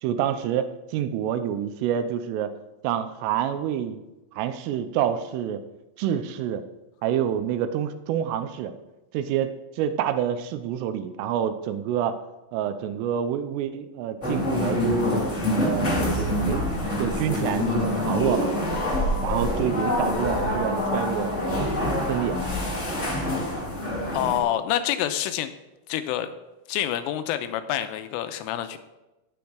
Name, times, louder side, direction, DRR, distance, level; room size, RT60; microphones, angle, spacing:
voice 1, 0.0-2.5 2.8-4.0 4.3-5.6 6.0-6.6 7.0-8.7 9.1-12.2 12.5-15.3 15.6-16.7 17.0-18.5 19.2-21.7 22.1-22.4, right 9 dB, 90° right, 10 dB, 3.3 m, -27 dB
sound 1, 14.2-24.4, left 1 dB, 35° left, 1.1 m, -26 dB
voice 2, 24.1-25.5 25.9-26.3 26.7-28.8, left 11 dB, 80° left, 9 dB, 3.2 m, -27 dB
16.5 x 7.2 x 4.7 m, 1.0 s
omnidirectional pair, 5.9 m